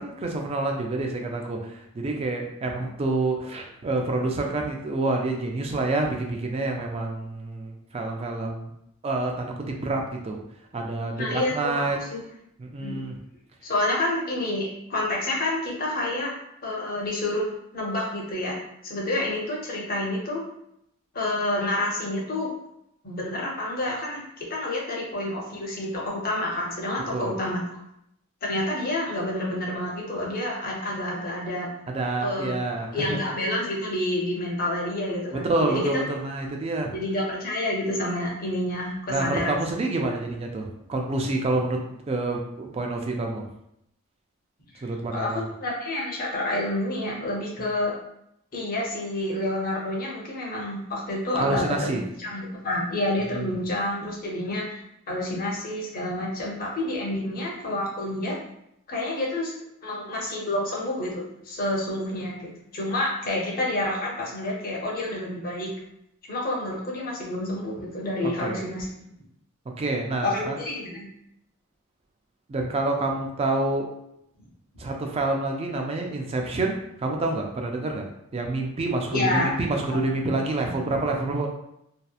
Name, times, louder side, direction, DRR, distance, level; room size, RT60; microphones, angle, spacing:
voice 1, 0.0-8.7 9.0-10.4 10.7-12.0 12.6-13.1 27.1-27.3 31.9-33.2 35.3-36.9 39.1-43.5 44.8-45.5 51.4-52.0 53.3-53.5 68.2-68.7 69.8-70.6 72.5-73.9 74.8-78.0 78.3-81.5, right 2 dB, 30° right, 2 dB, 0.3 m, -28 dB
voice 2, 11.2-12.2 12.8-13.0 13.6-16.3 16.6-20.4 21.1-22.5 23.0-27.6 28.4-31.7 32.2-32.5 32.9-35.8 36.9-39.6 45.1-47.9 48.5-58.4 58.9-59.5 59.8-65.7 66.3-68.9 70.2-71.1 79.1-79.6 79.9-80.0 80.6-80.9, left 1 dB, 45° left, -3 dB, 0.6 m, -29 dB
2.8 x 2.0 x 2.3 m, 0.78 s
head